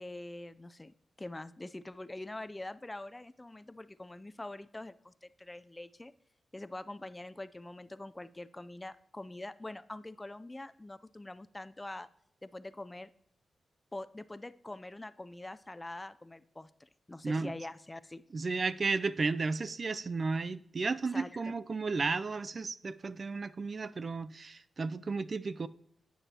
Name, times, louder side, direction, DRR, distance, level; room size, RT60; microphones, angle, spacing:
voice 1, 0.0-6.1 6.5-12.1 12.4-13.1 13.9-18.2 21.1-21.6, left 2 dB, 20° left, 0.4 m, -44 dB
voice 2, 18.3-25.7, right 4 dB, 50° right, 0.4 m, -33 dB
9.9 x 8.7 x 2.9 m
cardioid pair, 65°, 0 cm